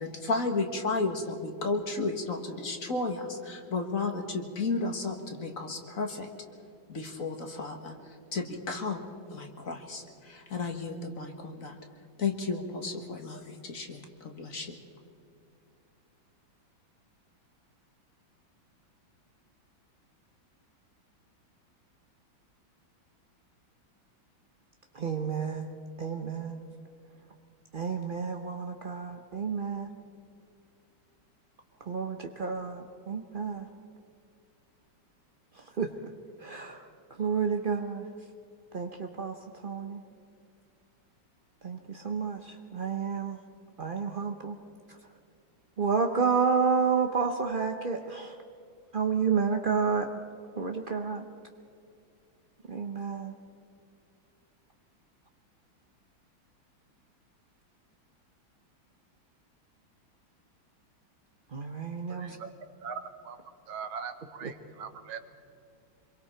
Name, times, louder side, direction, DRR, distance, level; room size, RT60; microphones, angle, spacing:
voice 1, 0.0-6.3 6.9-7.9 8.3-9.0 9.3-11.8 12.2-14.8, left 3 dB, 45° left, 4 dB, 1.8 m, -33 dB
voice 2, 24.9-25.7 26.0-26.6 27.7-29.9 31.9-33.7 35.5-35.9 36.4-36.9 37.2-38.1 38.7-39.4 39.6-40.0 41.6-43.4 43.8-44.6 44.9-45.0 45.8-48.3 48.9-50.2 50.6-51.2 52.7-53.3 61.5-62.4 64.4-64.5, right 5 dB, 50° right, 4 dB, 0.6 m, -30 dB
voice 3, 62.1-62.5 62.8-63.4 63.7-65.2, right 6 dB, 80° right, 9 dB, 1.9 m, -40 dB
26.0 x 22.5 x 4.5 m, 2.5 s
omnidirectional pair, 2.2 m